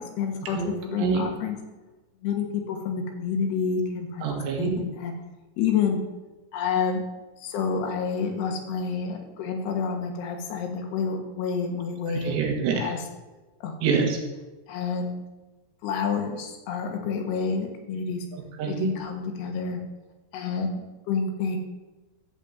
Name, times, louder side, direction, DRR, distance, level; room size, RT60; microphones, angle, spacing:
voice 1, 0.0-1.6 2.2-4.2 4.6-5.1 5.6-6.0 6.5-7.0 7.4-12.4 12.7-13.0 13.6-13.7 14.7-15.2 15.8-18.2 18.7-19.8 20.3-20.8 21.1-21.6, left 6 dB, 75° left, 3 dB, 3.3 m, -28 dB
voice 2, 0.6-1.3 4.2-4.8 12.1-12.9 13.8-14.2 18.3-19.0, right 5 dB, 75° right, 1 dB, 3.8 m, -26 dB
13.5 x 5.1 x 8.0 m, 1.2 s
omnidirectional pair, 5.0 m